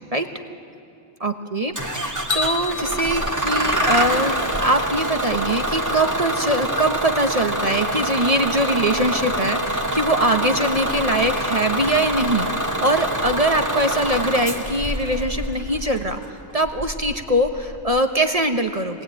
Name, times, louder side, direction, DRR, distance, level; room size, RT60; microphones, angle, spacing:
voice 1, 1.2-19.0, right 1 dB, 30° right, 5 dB, 1.2 m, -22 dB
Bus / Engine starting, 1.8-18.0, right 1 dB, 15° right, 1.7 m, -25 dB
sound 1, 2.3-4.6, left 4 dB, 75° left, 1.4 m, -31 dB
23.5 x 19.5 x 9.1 m, 2.7 s
omnidirectional pair, 1.3 m